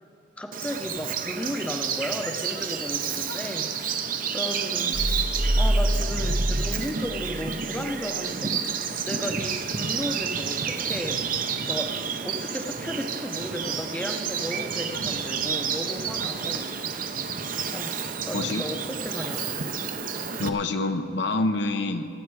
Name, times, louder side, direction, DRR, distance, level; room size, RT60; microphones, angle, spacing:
voice 1, 0.4-3.7 4.3-4.9 5.6-8.5 9.0-11.3 11.6-12.0 12.2-16.7 17.7-19.5, equal, 5° left, 4 dB, 0.7 m, -34 dB
Bird vocalization bird call bird song, 0.5-20.5, right 6 dB, 45° right, 0.7 m, -30 dB
sound 1, 4.9-7.5 7.8-8.0, equal, 30° right, 1.0 m, -25 dB
voice 2, 18.3-18.6 20.4-22.1, left 2 dB, 65° left, 8 dB, 0.7 m, -27 dB
22.5 x 9.7 x 4.8 m, 2.6 s
head